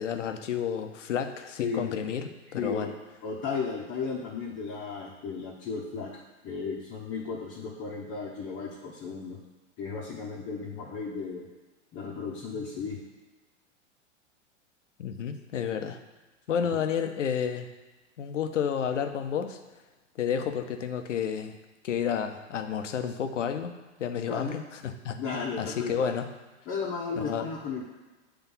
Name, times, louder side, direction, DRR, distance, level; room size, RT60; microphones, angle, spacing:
voice 1, 0.0-2.9 15.0-16.0 16.5-17.7 18.2-19.6 20.2-21.6 21.8-23.7 24.0-25.2 25.6-26.3 27.2-27.5, left 8 dB, 80° left, 7 dB, 0.8 m, -31 dB
voice 2, 2.5-2.9 3.2-9.4 9.8-11.5 11.9-13.0 16.7-16.8 24.3-24.6 25.2-26.1 26.7-27.8, left 5 dB, 30° left, -3 dB, 1.1 m, -34 dB
8.2 x 3.4 x 5.5 m, 1.2 s
hypercardioid pair, 110°, 36 cm